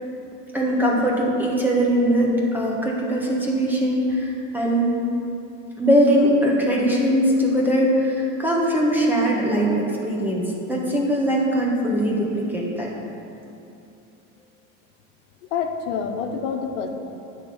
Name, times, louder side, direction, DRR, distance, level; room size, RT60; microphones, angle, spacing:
voice 1, 0.5-5.0 5.8-12.9, equal, 5° right, -3 dB, 1.4 m, -21 dB
voice 2, 15.5-16.9, left 6 dB, 90° left, 4 dB, 0.8 m, -27 dB
10.0 x 3.5 x 6.9 m, 2.8 s
supercardioid pair, 120°, 35 cm